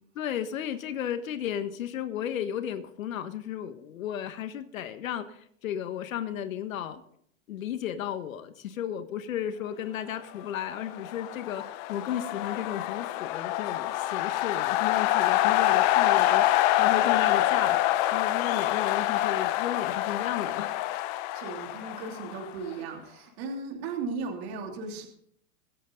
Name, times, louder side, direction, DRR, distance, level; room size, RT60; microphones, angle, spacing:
voice 1, 0.1-7.0 7.5-16.4 16.7-20.7, left 10 dB, 80° left, 9 dB, 1.5 m, -34 dB
sound 1, 10.8-22.7, left 14 dB, 35° left, 0.6 m, -26 dB
voice 2, 21.3-25.1, right 4 dB, 50° right, 2 dB, 2.9 m, -36 dB
23.5 x 8.2 x 3.9 m, 0.68 s
supercardioid pair, 150°, 40 cm